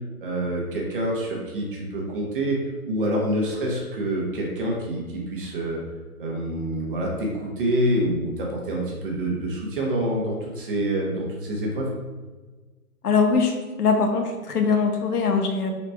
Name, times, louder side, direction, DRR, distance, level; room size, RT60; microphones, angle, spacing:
voice 1, 0.2-2.6 2.9-5.8 6.2-11.9, right 1 dB, 35° right, -2 dB, 0.9 m, -26 dB
voice 2, 13.0-15.7, left 5 dB, 80° left, 4 dB, 0.9 m, -22 dB
4.5 x 4.1 x 2.2 m, 1.3 s
hypercardioid pair, 155°, 46 cm